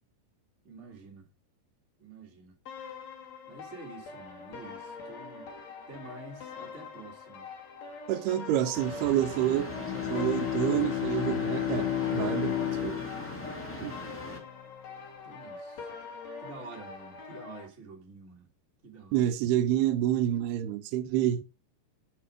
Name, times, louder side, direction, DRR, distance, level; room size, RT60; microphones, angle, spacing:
voice 1, 0.6-1.3 2.0-2.5 3.5-5.4 5.9-7.5 9.9-10.2 15.2-15.9 16.4-18.5 18.8-19.3 21.0-21.4, right 3 dB, 35° right, 1.2 m, -48 dB
sound 1, 2.7-17.7, left 4 dB, 55° left, 2.3 m, -44 dB
voice 2, 8.1-9.7 10.1-12.6 12.8-13.0 13.8-13.9 19.1-21.4, right 11 dB, 90° right, 2.7 m, -28 dB
sound 2, 8.7-14.4, equal, 15° left, 0.4 m, -41 dB
Bowed string instrument, 9.4-14.2, left 12 dB, 80° left, 2.5 m, -32 dB
7.1 x 6.2 x 4.9 m
omnidirectional pair, 4.5 m